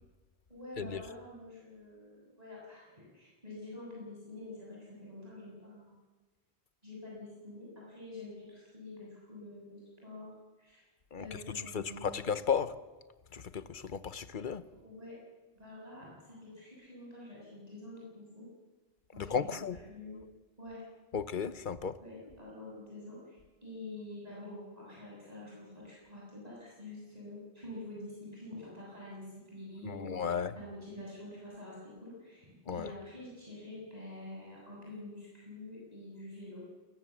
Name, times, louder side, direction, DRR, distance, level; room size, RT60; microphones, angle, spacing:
voice 1, 0.5-6.0 6.8-10.3 10.6-10.8 11.2-12.4 14.7-15.1 15.5-18.5 19.1-19.5 19.9-20.2 20.6-20.8 22.0-36.6, left 2 dB, 40° right, 7.4 m, -47 dB
voice 2, 11.1-12.7 13.3-14.6 19.2-19.8 21.1-22.0 29.8-30.5 32.7-32.9, left 6 dB, 55° left, 1.1 m, -34 dB
21.5 x 20.5 x 7.3 m
omnidirectional pair, 1.1 m